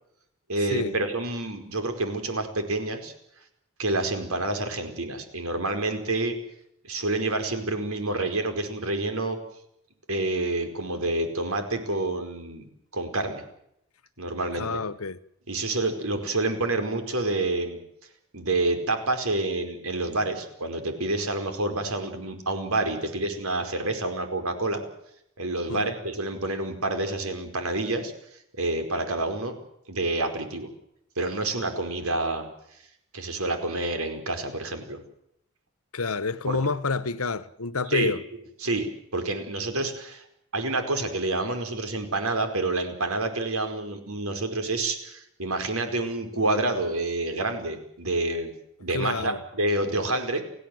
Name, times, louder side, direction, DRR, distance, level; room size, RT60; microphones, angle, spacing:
voice 1, 0.5-3.1 3.8-6.4 6.9-9.4 10.1-12.7 12.9-13.4 14.2-14.8 15.5-17.8 18.3-24.8 25.4-28.1 28.5-29.6 29.9-30.7 31.2-32.5 33.1-35.0 36.5-36.6 37.9-38.1 38.6-38.9 39.1-40.2 40.5-48.5 48.8-50.4, right 2 dB, 85° right, 4.9 m, -28 dB
voice 2, 14.6-15.2 25.7-25.9 35.9-38.2 48.9-49.4, left 4 dB, 85° left, 1.3 m, -28 dB
29.5 x 16.0 x 8.0 m
head